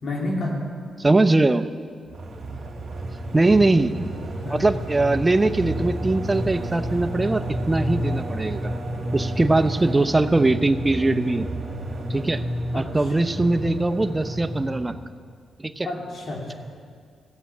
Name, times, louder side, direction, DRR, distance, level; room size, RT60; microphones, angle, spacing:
voice 1, 0.0-0.6 4.4-4.6 9.4-9.5 12.7-13.3 15.8-16.5, left 1 dB, 55° left, -1 dB, 3.1 m, -30 dB
voice 2, 1.0-1.7 3.3-4.1 4.5-8.7 9.1-11.5 12.1-12.4 12.7-15.0 15.6-15.9, right 2 dB, 20° right, 11 dB, 0.7 m, -21 dB
sound 1, 2.1-15.2, right 1 dB, 45° right, 2.1 m, -30 dB
15.5 x 8.5 x 7.2 m, 2.1 s
cardioid pair, 75°, 0 cm